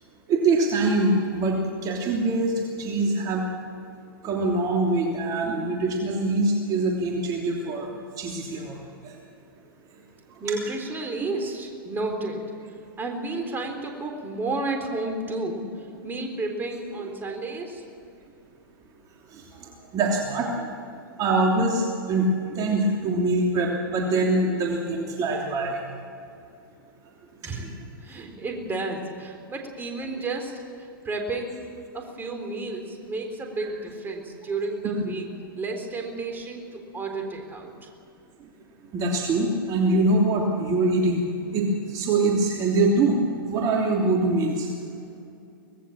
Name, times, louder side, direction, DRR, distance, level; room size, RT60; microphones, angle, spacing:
voice 1, 0.3-3.5 4.2-7.9 8.2-8.8 11.2-11.3 19.3-19.6 19.9-20.7 21.2-25.8 38.9-41.2 41.5-43.2 43.5-44.7, right 2 dB, 30° right, -1 dB, 3.1 m, -24 dB
voice 2, 10.4-12.4 13.0-15.6 16.0-17.8 27.4-27.6 28.0-31.6 31.9-37.9, right 2 dB, 15° right, 3 dB, 3.8 m, -32 dB
24.5 x 19.0 x 7.3 m, 2.6 s
hypercardioid pair, 120°, 12 cm